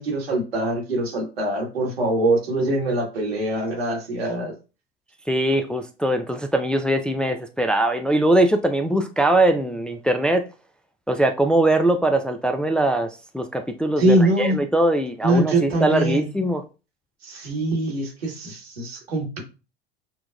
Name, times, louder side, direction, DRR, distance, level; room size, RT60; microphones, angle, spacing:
voice 1, 0.0-4.5 14.0-14.6 15.2-16.3 17.2-19.4, right 1 dB, 85° right, 1.4 m, -23 dB
voice 2, 5.3-10.5 11.1-16.6, right 1 dB, 5° left, 0.4 m, -21 dB
6.0 x 2.3 x 2.3 m
hypercardioid pair, 75°, 30 cm